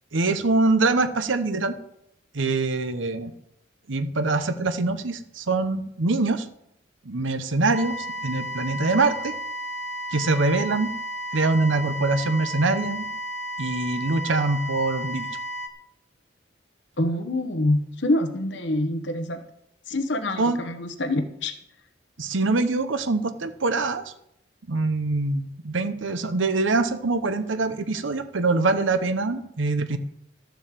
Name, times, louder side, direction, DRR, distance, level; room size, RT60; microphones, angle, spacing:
voice 1, 0.1-1.7 2.3-3.3 3.9-6.5 7.1-9.3 10.1-10.9 11.3-13.1 13.6-15.3 20.4-20.7 22.2-24.0 24.7-30.0, right 3 dB, 75° right, 10 dB, 0.9 m, -24 dB
sound 1, 7.7-15.7, equal, 35° right, 1.4 m, -33 dB
voice 2, 17.0-19.4 19.9-21.5, left 1 dB, 65° left, 7 dB, 1.0 m, -26 dB
13.0 x 7.2 x 7.5 m, 0.78 s
head